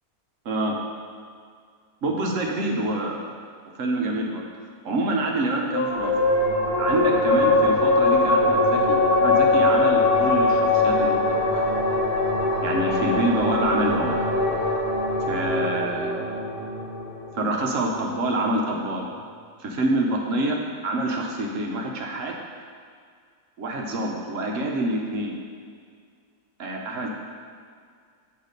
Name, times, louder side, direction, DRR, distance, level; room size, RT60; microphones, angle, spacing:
voice 1, 0.4-0.8 2.0-3.2 3.8-4.4 4.8-6.2 6.8-11.2 11.5-11.8 12.6-14.2 15.3-16.5 17.3-19.1 19.6-20.6 20.8-22.4 23.6-25.4 26.6-27.1, right 2 dB, 60° right, 0 dB, 1.1 m, -26 dB
sound 1, 5.7-18.6, left 2 dB, 45° left, 0.8 m, -22 dB
8.1 x 3.2 x 5.1 m, 2.1 s
omnidirectional pair, 1.6 m